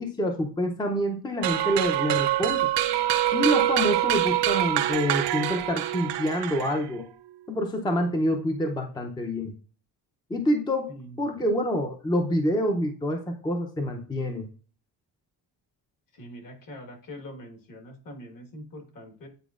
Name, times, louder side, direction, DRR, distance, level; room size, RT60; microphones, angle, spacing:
voice 1, 0.0-2.7 3.3-7.0 7.5-9.5 10.3-10.9 11.2-14.5, equal, 10° left, 3 dB, 0.6 m, -27 dB
sound 1, 1.4-7.0, right 13 dB, 75° right, 0.6 m, -25 dB
voice 2, 16.1-19.3, equal, 50° left, 3 dB, 1.5 m, -43 dB
9.2 x 4.2 x 2.4 m, 0.41 s
cardioid pair, 140°, 41 cm